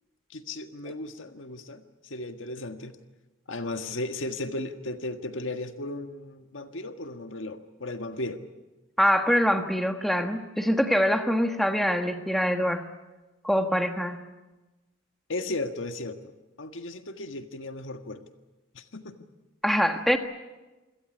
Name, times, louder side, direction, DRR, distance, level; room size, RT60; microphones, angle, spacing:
voice 1, 0.3-3.0 3.5-8.4 15.3-18.2 18.7-19.2, left 2 dB, 70° left, 7 dB, 1.7 m, -35 dB
voice 2, 9.0-12.9 13.4-14.2 19.6-20.2, equal, ahead, 5 dB, 1.4 m, -24 dB
27.0 x 17.0 x 9.8 m, 1.1 s
head